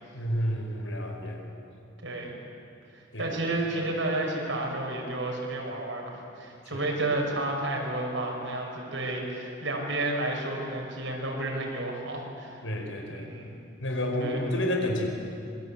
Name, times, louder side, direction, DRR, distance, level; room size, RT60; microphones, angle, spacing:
voice 1, 0.1-1.4 3.1-3.3 6.7-6.8 12.6-13.3 13.8-15.1, left 1 dB, 90° left, 2 dB, 5.1 m, -30 dB
voice 2, 2.0-2.3 3.2-12.6 13.1-13.6 14.2-14.5, right 2 dB, 80° right, -1 dB, 6.3 m, -31 dB
26.0 x 23.0 x 8.8 m, 2.5 s
head